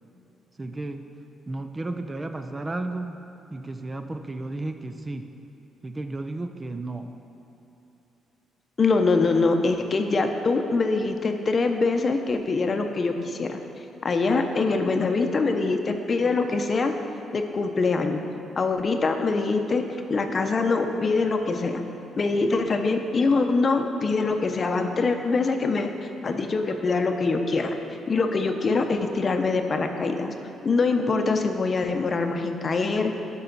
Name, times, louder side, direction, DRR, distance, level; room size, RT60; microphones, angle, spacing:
voice 1, 0.6-1.0 1.5-3.2 3.5-5.2 5.8-7.1, right 2 dB, 20° right, 7 dB, 0.5 m, -33 dB
voice 2, 8.8-13.6 14.0-16.9 17.3-18.2 18.6-19.8 20.1-21.8 22.2-25.9 26.2-27.8 28.1-30.3 30.6-33.1, left 3 dB, 40° left, 5 dB, 0.7 m, -24 dB
12.0 x 5.6 x 4.0 m, 3.0 s
cardioid pair, 90°, 0 cm